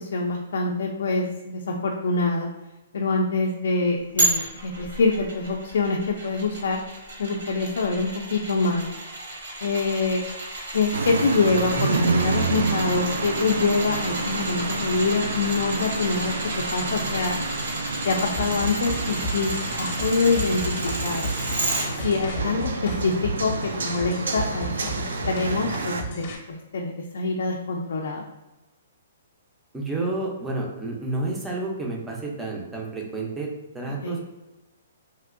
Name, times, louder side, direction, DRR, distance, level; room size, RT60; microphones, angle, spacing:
voice 1, 0.0-2.5 2.9-6.8 7.2-8.9 9.6-10.2 10.7-16.3 16.7-17.4 18.0-19.5 19.8-21.3 22.0-24.7 25.3-28.2 34.0-34.2, left 3 dB, 65° left, 0 dB, 0.3 m, -25 dB
sound 1, 4.2-21.9 22.3-22.4, right 2 dB, 60° right, 0.9 m, -32 dB
sound 2, 10.9-26.0, right 3 dB, 80° right, 0.4 m, -29 dB
sound 3, 18.4-26.4, right 1 dB, 40° left, 0.7 m, -33 dB
voice 2, 29.7-33.5 33.7-34.2, right 2 dB, 5° right, -2 dB, 0.4 m, -30 dB
3.0 x 2.5 x 2.4 m, 1.1 s
hypercardioid pair, 170°, 0 cm